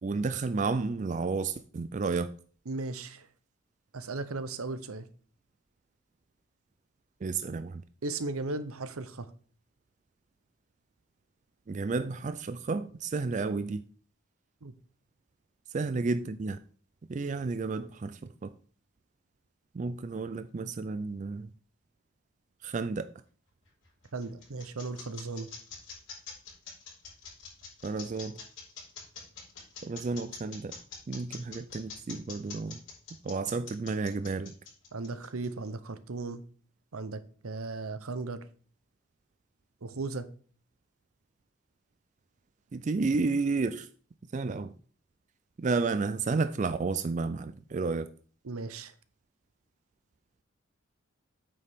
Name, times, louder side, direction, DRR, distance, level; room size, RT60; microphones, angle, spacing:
voice 1, 0.0-2.3 7.2-7.8 11.7-13.8 15.7-16.6 17.1-18.5 19.7-21.5 22.6-23.1 27.8-28.4 29.8-30.8 31.1-32.8 33.2-34.5 42.7-43.9 44.3-44.7 45.6-48.1, right 4 dB, 35° right, 0.3 m, -31 dB
voice 2, 2.7-3.3 3.9-5.1 8.0-9.3 14.6-14.7 24.1-25.5 34.9-36.4 36.9-38.4 39.8-40.3 48.4-48.9, right 3 dB, 85° right, 0.8 m, -36 dB
sound 1, 23.6-35.7, left 5 dB, 60° left, 4.7 m, -45 dB
8.8 x 6.8 x 3.6 m
head